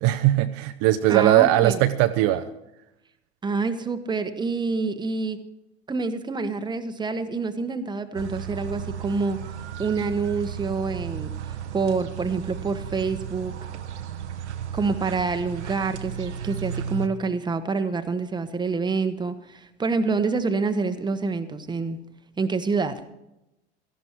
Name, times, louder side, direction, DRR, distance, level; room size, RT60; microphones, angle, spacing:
voice 1, 0.0-2.5, right 14 dB, 50° right, 9 dB, 0.8 m, -19 dB
voice 2, 1.1-1.8 3.4-5.4 5.9-9.4 9.8-11.3 11.7-13.5 14.7-22.0 22.4-23.0, right 4 dB, 15° right, 9 dB, 1.2 m, -27 dB
sound 1, 8.1-17.1, right 8 dB, 75° right, 1.1 m, -34 dB
17.5 x 13.5 x 4.6 m, 0.90 s
figure-of-eight pair, 80°, 34 cm